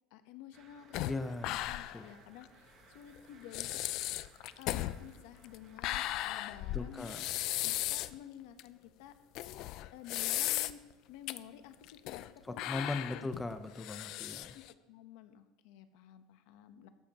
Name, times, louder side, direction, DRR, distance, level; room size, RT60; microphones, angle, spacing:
voice 1, 0.1-3.7 4.6-7.2 7.6-9.1 9.9-10.8 11.1-13.3 14.5-16.9, left 10 dB, 70° left, 10 dB, 0.9 m, -52 dB
sound 1, 0.5-8.1, right 5 dB, 35° right, 1.3 m, -62 dB
sound 2, 0.9-2.1 2.4-2.5 3.2-3.3 3.5-8.2 8.6-8.7 9.4-10.9 11.3-11.4 11.8-12.3 12.6-14.7, left 15 dB, 50° left, 0.4 m, -36 dB
voice 2, 1.1-2.1 6.7-7.2 12.6-14.5, left 2 dB, 10° left, 9 dB, 0.7 m, -39 dB
14.0 x 12.0 x 3.0 m, 1.2 s
cardioid pair, 165°, 0 cm